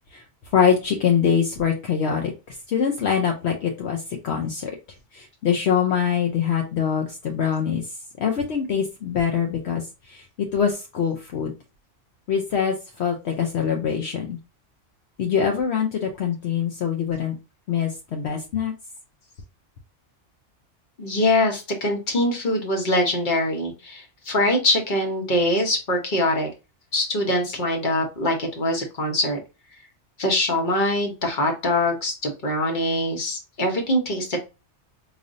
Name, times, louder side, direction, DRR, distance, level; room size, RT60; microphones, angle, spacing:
voice 1, 0.5-4.7 5.1-11.5 12.3-14.4 15.2-17.4 17.7-18.7, left 7 dB, 65° left, 2 dB, 0.9 m, -24 dB
voice 2, 21.0-26.5 26.9-29.4 30.2-34.4, left 1 dB, 45° left, 2 dB, 1.1 m, -23 dB
4.9 x 2.6 x 2.5 m, 0.29 s
omnidirectional pair, 1.3 m